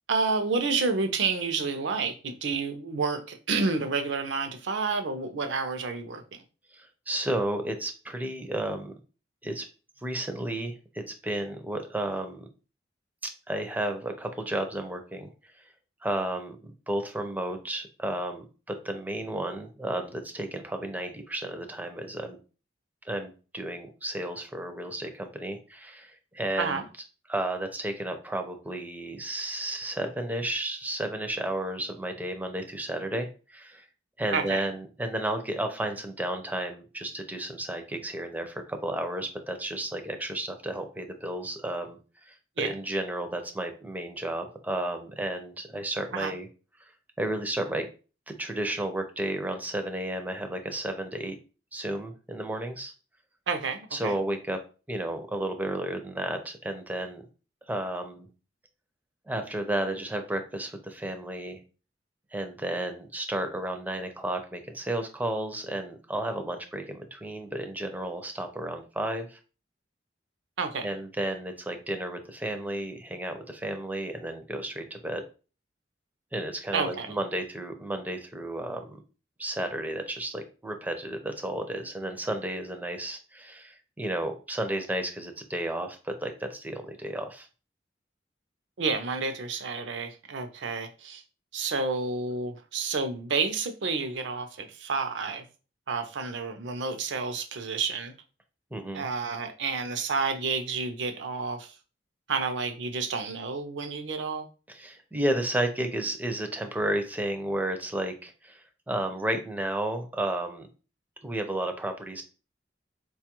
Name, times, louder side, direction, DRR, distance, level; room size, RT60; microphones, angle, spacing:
voice 1, 0.1-6.4 26.6-26.8 34.3-34.6 42.6-42.7 46.1-46.3 53.5-54.2 70.6-70.9 76.7-77.2 88.8-91.2 91.5-95.4 95.9-98.1 98.9-101.8 102.3-104.5, right 4 dB, 70° right, 0.5 m, -30 dB
voice 2, 6.7-8.9 9.4-9.7 10.0-12.5 13.2-15.3 15.6-15.7 16.0-22.4 23.0-26.8 27.3-33.9 34.2-46.5 46.8-46.9 47.2-47.9 48.4-51.4 51.7-52.9 53.9-54.6 54.9-57.2 57.7-58.3 59.3-61.6 62.3-69.4 70.8-75.2 76.3-79.0 79.4-87.5 98.7-99.0 104.7-110.7 111.2-112.2, right 1 dB, 10° right, 0.4 m, -32 dB
4.4 x 2.3 x 2.9 m
head